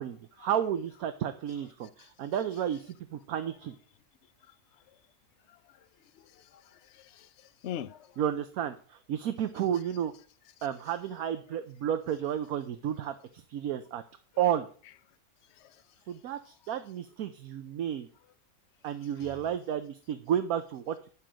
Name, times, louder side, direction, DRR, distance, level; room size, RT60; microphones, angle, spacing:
voice 1, 0.0-3.7 8.2-10.1 10.6-14.0 14.4-14.7 16.1-18.1 18.8-21.1, right 9 dB, 70° right, 1.2 m, -32 dB
voice 2, 6.1-8.2 15.6-15.8 19.2-19.3, left 10 dB, 55° left, 0.9 m, -43 dB
11.5 x 5.0 x 7.6 m
omnidirectional pair, 1.6 m